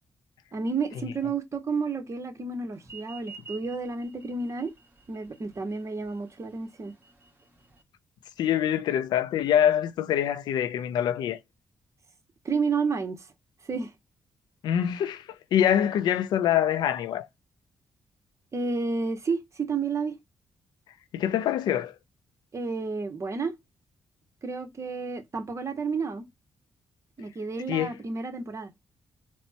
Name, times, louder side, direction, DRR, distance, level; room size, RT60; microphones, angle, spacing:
voice 1, 0.5-4.7 5.1-6.9 12.4-13.2 13.7-13.9 18.5-20.1 22.5-23.6 24.4-26.2 27.2-28.7, right 4 dB, 45° right, 1.0 m, -31 dB
sound 1, 2.8-7.8, right 5 dB, 25° right, 1.6 m, -49 dB
voice 2, 8.4-11.4 14.6-15.3 15.5-17.3 21.1-21.9 27.7-27.9, left 10 dB, 85° left, 0.4 m, -25 dB
4.1 x 2.2 x 2.8 m
cardioid pair, 65°, 7 cm